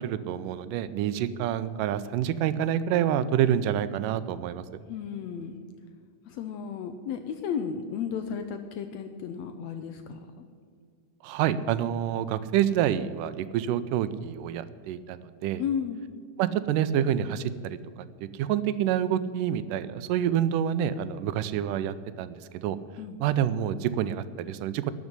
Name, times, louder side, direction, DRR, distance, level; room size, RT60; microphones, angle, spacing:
voice 1, 0.0-4.6 11.2-15.6 16.4-17.8 18.3-22.8 23.2-24.9, right 10 dB, 90° right, 14 dB, 2.2 m, -27 dB
voice 2, 4.9-5.6 6.3-10.2 15.6-16.0 23.0-23.2, left 7 dB, 75° left, 7 dB, 1.6 m, -33 dB
12.5 x 6.3 x 9.7 m, 2.1 s
omnidirectional pair, 3.7 m